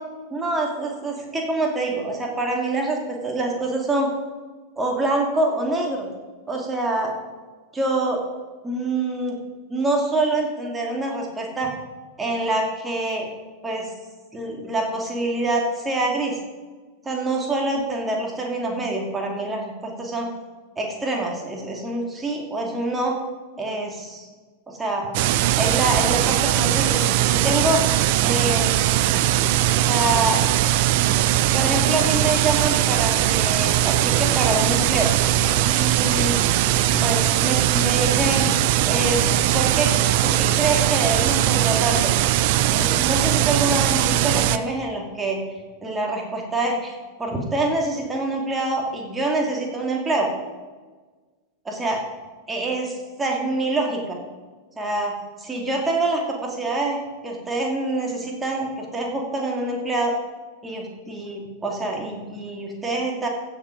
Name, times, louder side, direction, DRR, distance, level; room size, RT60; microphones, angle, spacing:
voice 1, 0.3-4.1 4.8-6.1 6.5-7.1 7.7-8.2 8.6-9.4 9.7-11.7 12.2-13.3 13.6-13.9 14.3-16.4 17.0-20.3 20.8-23.2 23.6-24.3 24.7-25.1 25.6-27.8 28.2-28.9 29.8-30.4 31.5-35.1 35.6-36.4 37.0-38.5 38.9-39.2 39.5-39.9 40.2-42.1 42.7-45.4 45.8-50.3 51.6-52.0 52.5-54.2 54.8-57.0 57.2-60.2 60.6-63.3, right 2 dB, 15° right, 0 dB, 2.5 m, -25 dB
sound 1, 25.1-44.6, right 14 dB, 50° right, 0.5 m, -20 dB
sound 2, 34.0-41.2, left 6 dB, 30° left, 2.2 m, -39 dB
15.0 x 7.3 x 5.1 m, 1.4 s
figure-of-eight pair, 90°, 0 cm